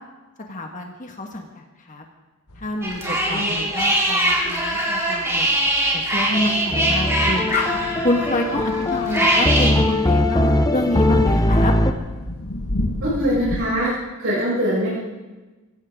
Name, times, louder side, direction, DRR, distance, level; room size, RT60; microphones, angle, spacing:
voice 1, 0.5-2.0 2.6-5.5 5.9-7.7 8.0-11.7, left 2 dB, 35° left, 2 dB, 1.6 m, -27 dB
sound 1, 2.5-13.6, left 1 dB, 80° left, 1.6 m, -33 dB
sound 2, 2.8-9.7, right 1 dB, 10° right, 3.2 m, -22 dB
voice 2, 3.0-3.5 13.0-13.9 14.2-14.9, equal, 60° right, -9 dB, 6.9 m, -23 dB
sound 3, 6.7-11.9, left 1 dB, 15° left, 0.9 m, -20 dB
24.0 x 15.5 x 3.8 m, 1.2 s
head